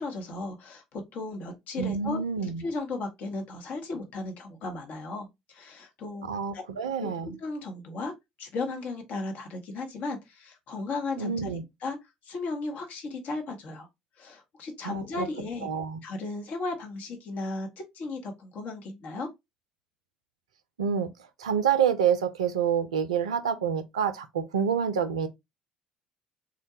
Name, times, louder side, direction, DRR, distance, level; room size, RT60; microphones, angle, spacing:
voice 1, 0.0-6.3 6.5-6.6 7.0-8.1 8.4-11.5 11.8-12.0 12.2-13.9 14.2-15.7 16.0-19.3, left 3 dB, 55° left, 0.8 m, -35 dB
voice 2, 1.8-2.6 6.2-7.4 11.2-11.6 14.8-15.3 15.6-16.0 20.8-21.1 21.4-25.3, right 7 dB, 80° right, 0.4 m, -27 dB
3.8 x 2.2 x 2.7 m
figure-of-eight pair, 55°, 3 cm